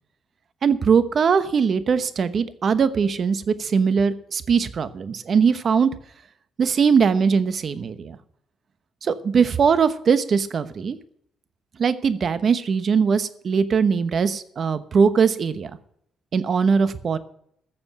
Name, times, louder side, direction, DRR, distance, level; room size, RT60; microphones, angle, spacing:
voice 1, 0.6-5.9 6.6-8.2 9.0-11.0 11.8-15.7 16.3-17.2, right 6 dB, 50° right, 13 dB, 1.0 m, -20 dB
14.5 x 7.0 x 6.5 m, 0.70 s
cardioid pair, 90°, 0 cm